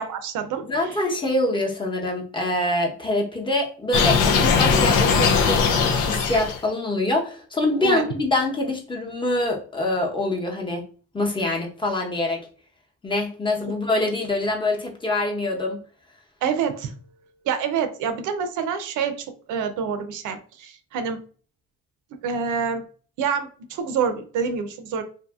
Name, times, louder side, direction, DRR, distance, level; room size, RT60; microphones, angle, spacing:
voice 1, 0.0-1.0 7.8-8.0 16.4-16.9 17.5-21.2 22.2-22.8 23.2-25.0, right 6 dB, 80° right, 8 dB, 0.5 m, -27 dB
voice 2, 0.6-10.8 11.1-12.4 13.0-15.8, left 2 dB, 15° left, -1 dB, 0.8 m, -25 dB
sound 1, 3.9-6.6, left 5 dB, 90° left, 0.5 m, -19 dB
2.6 x 2.6 x 2.3 m, 0.42 s
cardioid pair, 90°, 30 cm